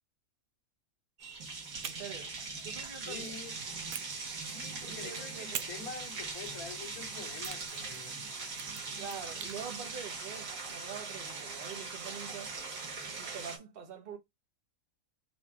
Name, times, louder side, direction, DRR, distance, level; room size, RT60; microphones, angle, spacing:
sound 1, 1.2-13.6, right 4 dB, 70° right, 1.6 m, -41 dB
voice 1, 1.8-2.4 2.6-3.3 4.8-5.7 9.0-12.5 13.0-14.2, right 7 dB, 45° right, 1.0 m, -45 dB
sound 2, 1.8-3.3 3.9-4.9 5.5-9.6, right 9 dB, 85° right, 1.1 m, -46 dB
voice 2, 3.1-3.6 4.5-8.4, left 5 dB, 85° left, 1.4 m, -46 dB
4.2 x 2.4 x 4.4 m
omnidirectional pair, 1.5 m